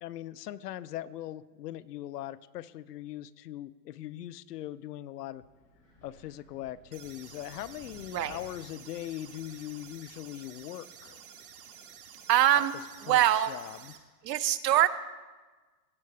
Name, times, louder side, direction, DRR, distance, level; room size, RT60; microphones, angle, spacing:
voice 1, 0.0-5.4 6.0-11.2 12.6-12.7 13.1-13.9, left 13 dB, 70° left, 17 dB, 0.5 m, -40 dB
Wind, 5.3-10.6, equal, 5° right, 0.4 m, -58 dB
sound 1, 6.9-14.0, right 8 dB, 35° right, 0.9 m, -51 dB
voice 2, 12.3-12.7 13.0-13.6 14.2-14.9, right 12 dB, 75° right, 14 dB, 0.7 m, -23 dB
16.5 x 7.5 x 3.5 m, 1.3 s
hypercardioid pair, 160°, 49 cm